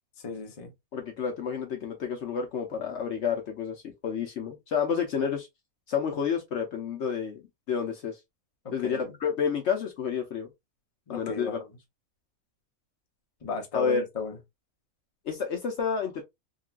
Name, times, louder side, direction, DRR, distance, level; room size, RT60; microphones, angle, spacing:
voice 1, 0.2-0.7 8.8-9.1 11.1-11.6 13.4-14.3, left 5 dB, 30° left, 0.7 m, -35 dB
voice 2, 0.9-5.5 5.9-7.4 7.7-8.2 8.7-10.5 11.1-11.6 13.7-14.0 15.3-16.2, left 6 dB, 60° left, 0.9 m, -30 dB
3.7 x 2.2 x 2.4 m
omnidirectional pair, 1.5 m